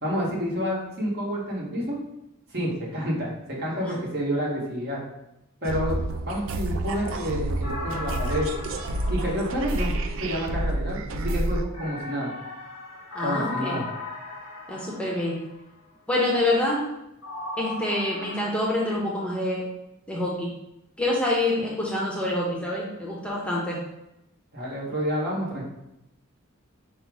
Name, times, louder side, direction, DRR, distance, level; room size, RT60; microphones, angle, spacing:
voice 1, 0.0-2.0 2.5-5.0 5.6-8.5 9.1-9.9 10.2-12.3 13.2-13.9 24.5-25.6, equal, 50° right, -4 dB, 1.3 m, -29 dB
sound 1, 5.7-11.7, right 1 dB, 65° right, 0.4 m, -29 dB
sound 2, 7.6-10.4 11.7-15.6 17.2-18.6, left 2 dB, 85° left, 1.0 m, -37 dB
voice 2, 13.1-13.8 14.7-15.4 16.1-16.8 17.6-19.6 20.1-20.5 21.0-23.8, left 1 dB, 5° left, -4 dB, 0.7 m, -26 dB
5.3 x 2.0 x 4.7 m, 0.86 s
head